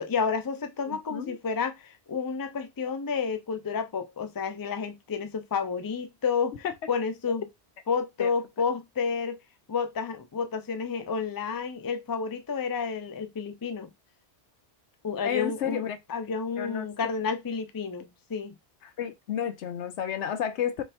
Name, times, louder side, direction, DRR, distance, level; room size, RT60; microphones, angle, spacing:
voice 1, 0.0-7.4 7.9-9.4 9.7-13.9 15.0-18.6, left 5 dB, 30° left, 0.4 m, -30 dB
voice 2, 0.9-1.4 6.6-6.7 8.2-8.3 15.2-16.0 16.6-16.9 18.8-20.8, left 9 dB, 80° left, 1.0 m, -31 dB
3.4 x 3.2 x 4.2 m
omnidirectional pair, 1.2 m